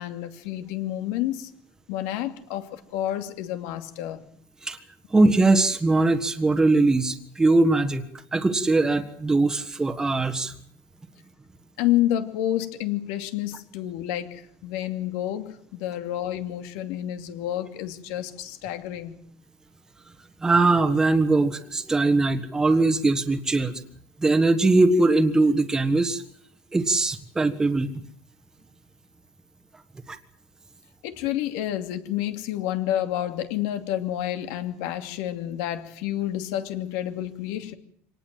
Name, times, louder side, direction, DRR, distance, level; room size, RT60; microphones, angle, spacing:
voice 1, 0.0-1.5 1.9-4.2 11.8-19.2 31.0-37.7, left 12 dB, 75° left, 7 dB, 2.6 m, -29 dB
voice 2, 5.1-8.0 8.3-10.5 20.4-23.7 24.2-26.2 26.7-27.9 30.1-30.2, right 2 dB, 10° right, 6 dB, 1.5 m, -21 dB
25.5 x 19.0 x 7.7 m, 0.63 s
cardioid pair, 170°, 6 cm